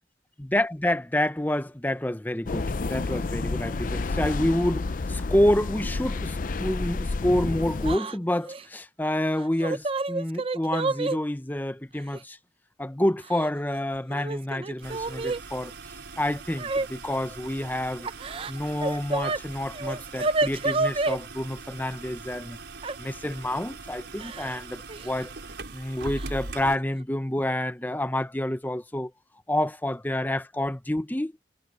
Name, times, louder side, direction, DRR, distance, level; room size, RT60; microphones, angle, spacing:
voice 1, 0.4-12.4 12.8-15.7 16.2-18.1 18.5-22.6 23.0-25.3 25.7-29.1 29.5-31.3, left 1 dB, 10° left, 0.7 m, -28 dB
sound 1, 2.5-8.0, left 3 dB, 50° left, 0.5 m, -30 dB
Yell / Crying sobbing, 7.8-8.2 8.5-8.6 9.4-11.2 12.1-12.2 13.2-13.8 14.1-15.4 16.6-16.9 18.0-19.4 19.7-21.2 22.8-23.0 24.2-24.6 24.9-25.1 26.2-26.3 26.7-27.0, right 3 dB, 30° right, 0.6 m, -29 dB
sound 2, 14.8-26.8, right 3 dB, 90° right, 4.3 m, -41 dB
head